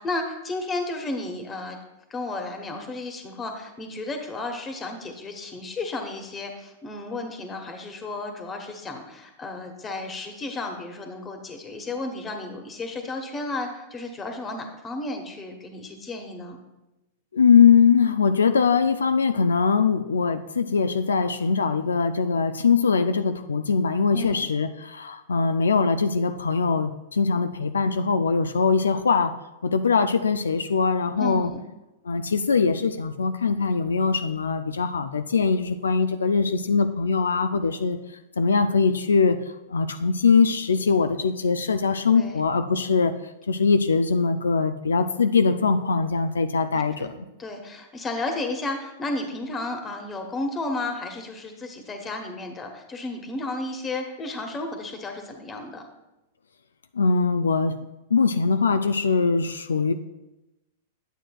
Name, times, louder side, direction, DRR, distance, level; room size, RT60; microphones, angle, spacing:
voice 1, 0.0-1.8 2.1-16.6 24.1-24.5 31.2-31.6 42.1-42.4 46.7-47.1 47.4-55.9, left 2 dB, 20° left, 4 dB, 1.2 m, -33 dB
voice 2, 17.3-29.4 29.6-31.5 32.1-38.0 38.4-43.2 43.5-47.1 56.9-57.8 58.1-59.9, left 5 dB, 90° left, 9 dB, 0.3 m, -22 dB
9.0 x 7.6 x 2.3 m, 0.98 s
hypercardioid pair, 110°, 0 cm